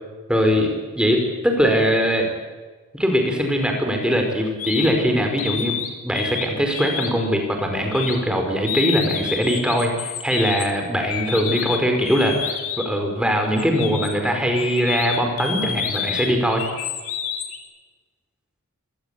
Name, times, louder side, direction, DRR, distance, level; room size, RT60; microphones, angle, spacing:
voice 1, 0.3-2.3 2.9-16.6, equal, 5° right, 3 dB, 5.0 m, -21 dB
sound 1, 4.6-4.9 5.4-6.5 6.7-7.3 7.9-8.1 8.6-13.0 13.6-17.6, left 8 dB, 80° left, 3.4 m, -29 dB
25.5 x 19.5 x 8.5 m, 1.3 s
head